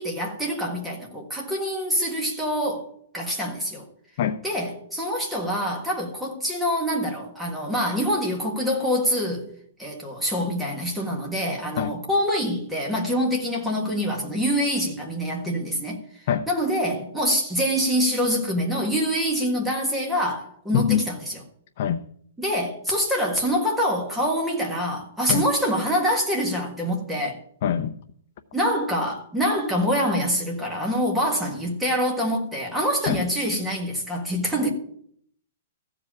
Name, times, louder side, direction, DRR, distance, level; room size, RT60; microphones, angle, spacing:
voice 1, 0.0-3.9 4.4-9.5 9.8-21.4 22.4-27.4 28.5-34.7, equal, 5° right, 1.6 m, -25 dB
voice 2, 20.7-21.0 21.8-22.0 25.3-25.4 27.6-27.9 33.1-33.2, left 9 dB, 40° left, 0.5 m, -23 dB
14.5 x 5.0 x 8.5 m
hypercardioid pair, 175°, 0 cm